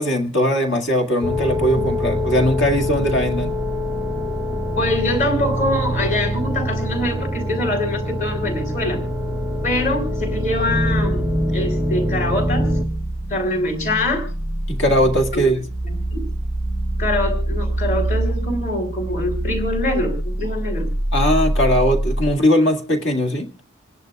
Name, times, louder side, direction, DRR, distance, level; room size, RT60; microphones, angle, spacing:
voice 1, 0.0-3.5 14.7-15.6 21.1-23.5, equal, 60° left, 5 dB, 2.0 m, -19 dB
sound 1, 1.2-12.8, equal, 5° right, 0.7 m, -24 dB
voice 2, 4.8-9.0 9.6-12.7 13.3-14.3 15.3-15.4 15.8-16.3 17.0-20.9, left 1 dB, 40° left, 3 dB, 3.7 m, -24 dB
sound 2, 10.7-22.3, right 1 dB, 85° left, 1.8 m, -24 dB
28.0 x 11.0 x 2.3 m, 0.33 s
head